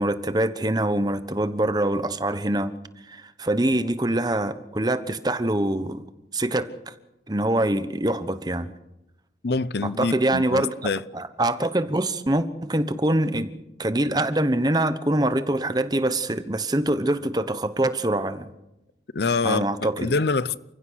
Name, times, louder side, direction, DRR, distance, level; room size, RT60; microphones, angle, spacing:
voice 1, 0.0-2.7 3.1-6.0 6.3-6.9 7.3-8.7 9.8-13.5 13.8-18.5 19.4-20.2, right 1 dB, 20° right, 1.1 m, -24 dB
voice 2, 9.4-11.0 19.1-20.6, left 4 dB, 65° left, 0.7 m, -25 dB
29.5 x 15.5 x 6.4 m
head